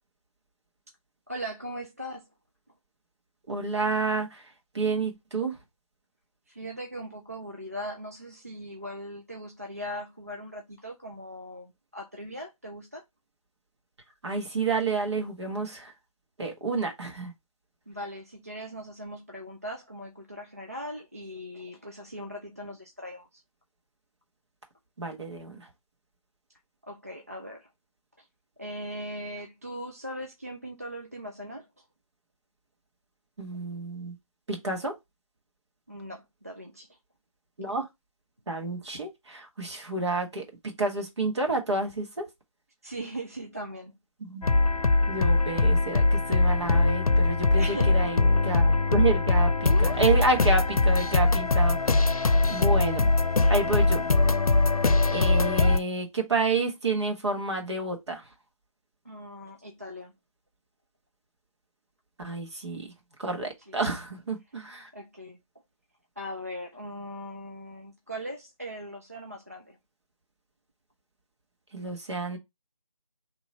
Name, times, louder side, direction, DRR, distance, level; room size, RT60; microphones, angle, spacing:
voice 1, 1.3-2.3 6.5-13.0 17.9-23.4 26.9-27.7 28.2-28.3 28.6-31.8 35.9-37.0 42.8-43.9 47.6-48.1 59.0-60.1 63.6-63.8 64.9-65.4 66.2-69.8, equal, 25° right, 0.3 m, -39 dB
voice 2, 3.5-4.4 4.7-5.5 14.2-15.9 16.4-17.3 25.0-25.7 33.4-34.1 34.5-34.9 37.6-37.8 38.5-40.4 40.8-42.2 44.2-44.5 45.1-53.1 53.5-54.1 55.1-58.2 62.2-62.9 63.2-64.9 71.7-72.4, right 3 dB, 50° right, 1.5 m, -29 dB
sound 1, 44.4-55.8, left 3 dB, 85° left, 0.6 m, -22 dB
3.7 x 3.0 x 4.2 m
figure-of-eight pair, 165°, 18 cm